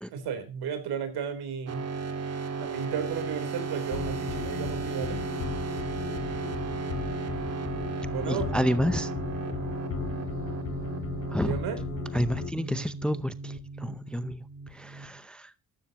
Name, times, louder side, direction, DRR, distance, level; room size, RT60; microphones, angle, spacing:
voice 1, 0.1-1.9 2.6-5.2 8.1-8.5 11.3-11.8, right 7 dB, 80° right, 9 dB, 3.7 m, -33 dB
sound 1, 1.7-15.2, right 4 dB, 40° right, 2.0 m, -35 dB
sound 2, 3.9-12.5, left 8 dB, 35° left, 0.9 m, -36 dB
voice 2, 8.3-9.1 11.3-11.6 12.1-14.4 14.7-15.5, equal, 5° left, 14 dB, 0.6 m, -30 dB
14.5 x 12.5 x 2.9 m, 0.28 s
cardioid pair, 120°, 38 cm